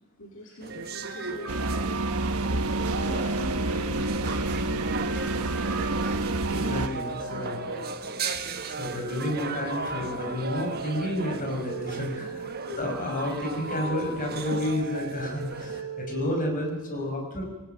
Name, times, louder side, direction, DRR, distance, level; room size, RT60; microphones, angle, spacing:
voice 1, 0.2-2.4 2.9-6.2 7.3-8.1 12.3-12.6 17.3-17.4, equal, 60° left, 1 dB, 2.8 m, -43 dB
sound 1, 0.6-15.8, right 4 dB, 45° right, 1.5 m, -37 dB
sound 2, 0.7-16.7, right 3 dB, 60° right, 3.3 m, -39 dB
sound 3, 1.5-6.9, right 2 dB, 80° right, 1.2 m, -28 dB
voice 2, 6.5-7.6 8.6-17.5, left 1 dB, 35° left, 2 dB, 5.8 m, -31 dB
22.5 x 19.0 x 9.2 m, 1.2 s
head